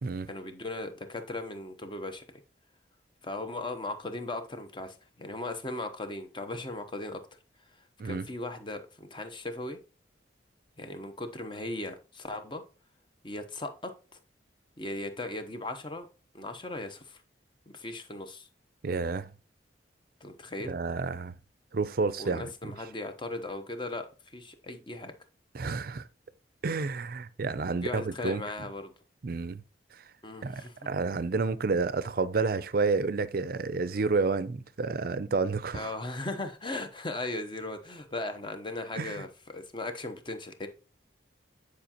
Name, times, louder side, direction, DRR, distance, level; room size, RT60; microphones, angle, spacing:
voice 1, 0.3-2.2 3.2-7.2 8.0-9.8 10.8-12.6 13.2-13.9 14.8-16.1 16.3-17.2 17.7-18.5 20.2-20.7 22.2-25.1 27.8-28.9 30.2-30.9 35.7-40.7, left 2 dB, 25° left, 0.9 m, -37 dB
voice 2, 18.8-19.3 20.6-21.3 21.7-22.7 25.5-26.1 26.6-28.4 29.2-29.6 29.9-30.0 30.4-35.9 39.0-39.2, right 4 dB, 50° right, 0.5 m, -30 dB
9.6 x 4.8 x 2.9 m
head